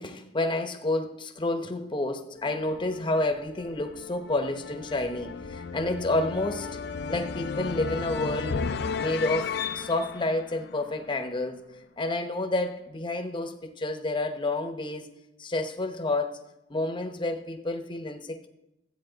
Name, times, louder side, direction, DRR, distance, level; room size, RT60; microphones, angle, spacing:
voice 1, 0.0-6.7 7.1-8.6 9.0-11.6 12.0-15.1 15.4-16.4 16.7-18.5, left 2 dB, 25° left, 6 dB, 0.8 m, -29 dB
sound 1, 2.4-11.4, left 5 dB, 60° left, 0.4 m, -35 dB
13.5 x 8.4 x 3.9 m, 0.92 s
head